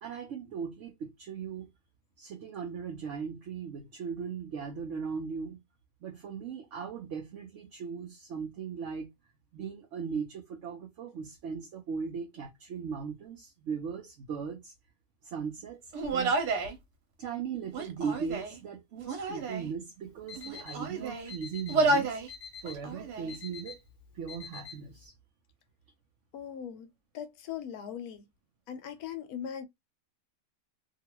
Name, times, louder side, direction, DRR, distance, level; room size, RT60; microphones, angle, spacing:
voice 1, 0.0-1.7 2.2-5.6 6.0-9.1 9.5-14.7 15.2-15.8 16.1-16.3 17.2-22.2 22.6-23.8 24.1-25.1, right 6 dB, 60° right, 0.8 m, -38 dB
Human voice, 15.9-16.8 17.7-18.6 19.0-19.7 20.4-21.3 21.7-22.3 22.6-23.3, right 3 dB, 75° right, 1.4 m, -30 dB
Alarm, 20.0-25.1, left 6 dB, 45° left, 0.8 m, -47 dB
voice 2, 26.3-28.2 28.7-29.7, left 9 dB, 70° left, 1.1 m, -40 dB
2.8 x 2.4 x 2.9 m
omnidirectional pair, 1.7 m